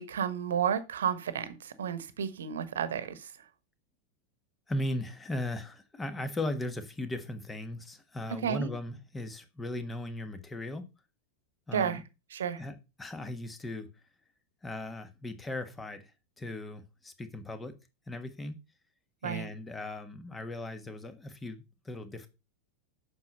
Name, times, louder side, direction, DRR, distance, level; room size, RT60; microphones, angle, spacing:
voice 1, 0.0-3.5 8.4-8.7 11.7-12.0 12.3-12.6 19.2-19.5, right 8 dB, 65° right, 1.2 m, -32 dB
voice 2, 4.7-10.9 11.7-12.0 12.6-13.9 14.6-17.8 18.1-18.6 19.2-22.3, left 1 dB, 15° left, 1.4 m, -37 dB
8.5 x 6.1 x 5.4 m
figure-of-eight pair, 90°, 0 cm